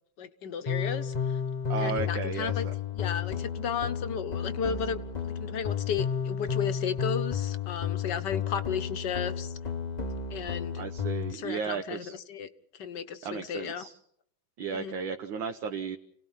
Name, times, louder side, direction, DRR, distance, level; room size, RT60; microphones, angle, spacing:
voice 1, 0.2-1.4 1.8-2.6 2.9-9.5 10.3-10.8 11.3-12.5 12.8-13.9 14.7-14.9, left 7 dB, 60° left, 10 dB, 1.6 m, -34 dB
sound 1, 0.7-11.3, left 7 dB, 30° left, 0.8 m, -32 dB
voice 2, 1.7-2.7 10.8-12.2 13.2-14.0 14.6-16.0, right 6 dB, 65° right, 5 dB, 1.7 m, -34 dB
29.5 x 18.0 x 5.7 m, 0.67 s
omnidirectional pair, 2.3 m